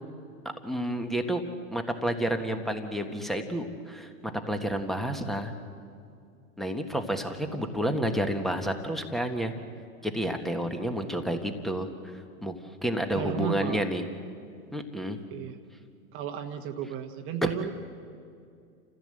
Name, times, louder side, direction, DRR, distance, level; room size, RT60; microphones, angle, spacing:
voice 1, 0.6-1.4 1.7-4.1 4.5-5.5 6.6-9.5 10.0-11.9 12.4-12.5 12.8-14.0 14.7-15.2, equal, ahead, 6 dB, 1.3 m, -30 dB
voice 2, 13.1-13.8 15.3-15.6 16.1-17.7, right 8 dB, 30° right, 6 dB, 1.2 m, -34 dB
29.5 x 15.0 x 7.8 m, 2.4 s
hypercardioid pair, 135°, 44 cm